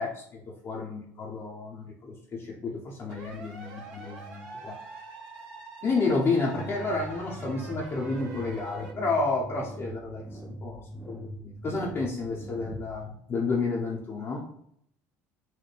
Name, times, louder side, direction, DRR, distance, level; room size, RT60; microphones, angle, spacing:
voice 1, 0.0-4.7 5.8-14.4, left 3 dB, 35° left, -3 dB, 0.7 m, -31 dB
sound 1, 3.1-8.9, right 3 dB, 60° right, 1.3 m, -44 dB
sound 2, 6.5-13.1, right 2 dB, ahead, 0.3 m, -42 dB
4.2 x 2.1 x 3.3 m, 0.69 s
hypercardioid pair, 85°, 7 cm